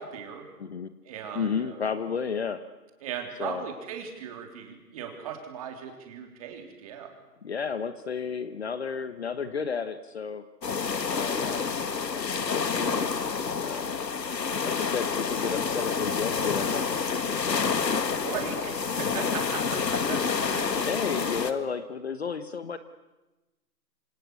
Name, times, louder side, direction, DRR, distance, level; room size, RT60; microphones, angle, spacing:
voice 1, 0.0-0.4 1.1-1.8 3.0-7.1 18.2-20.8, right 7 dB, 20° right, 3 dB, 3.5 m, -38 dB
voice 2, 0.6-0.9 1.3-2.6 3.4-3.6 7.4-10.4 11.1-13.2 13.6-14.0 14.6-17.9 18.1-18.2 19.7-20.1 20.6-22.8, left 6 dB, 40° left, 12 dB, 1.2 m, -33 dB
sound 1, 10.6-21.5, left 5 dB, 80° left, 2.3 m, -28 dB
27.0 x 26.0 x 8.3 m, 1.1 s
hypercardioid pair, 165°, 49 cm